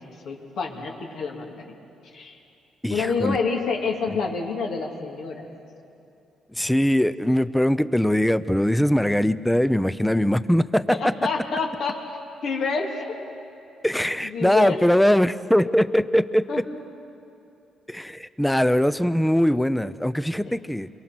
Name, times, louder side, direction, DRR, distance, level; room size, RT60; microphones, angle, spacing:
voice 1, 0.2-1.7 2.1-2.3 2.9-5.5 10.9-12.0 12.4-13.2 14.2-14.8 16.5-16.6 20.4-20.5, left 4 dB, 75° left, 0 dB, 3.1 m, -28 dB
voice 2, 2.8-3.4 6.5-11.0 13.8-16.6 17.9-20.9, equal, 5° left, 14 dB, 0.6 m, -21 dB
28.5 x 22.5 x 6.1 m, 2.7 s
cardioid pair, 90°, 0 cm